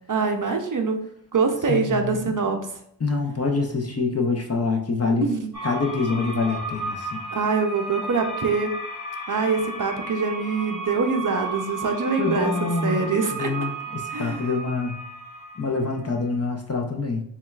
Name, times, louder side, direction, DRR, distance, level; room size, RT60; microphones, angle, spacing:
voice 1, 0.1-1.0 1.3-2.7 5.2-5.5 7.3-8.7 9.3-13.5 14.1-14.5, right 4 dB, 45° right, 4 dB, 0.5 m, -24 dB
voice 2, 1.7-2.3 3.0-5.3 5.6-7.2 12.2-13.0 13.3-15.0 15.6-17.2, left 4 dB, 35° left, 2 dB, 0.6 m, -25 dB
sound 1, 5.5-16.2, right 2 dB, ahead, 1.4 m, -34 dB
6.9 x 2.3 x 2.3 m, 0.71 s
wide cardioid pair, 80°, 45 cm